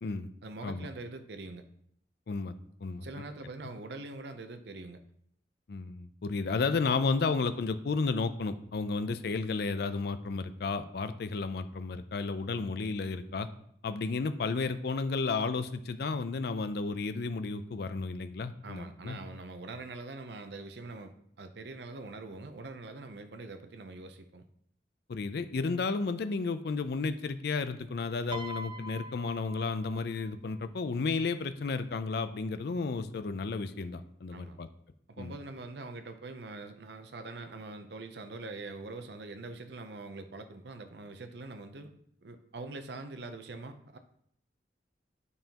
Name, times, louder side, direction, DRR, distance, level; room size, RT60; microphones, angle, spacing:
voice 1, 0.4-1.6 3.0-5.0 18.6-24.4 34.3-34.6 35.1-41.9 42.2-44.0, right 3 dB, 65° right, 8 dB, 0.6 m, -43 dB
voice 2, 2.8-3.2 5.7-13.5 13.8-19.2 25.1-34.7 35.2-35.3, left 4 dB, 60° left, 11 dB, 0.4 m, -32 dB
Piano, 28.3-30.7 31.7-32.0, right 1 dB, 25° right, 0.3 m, -44 dB
9.2 x 5.4 x 2.9 m, 0.68 s
head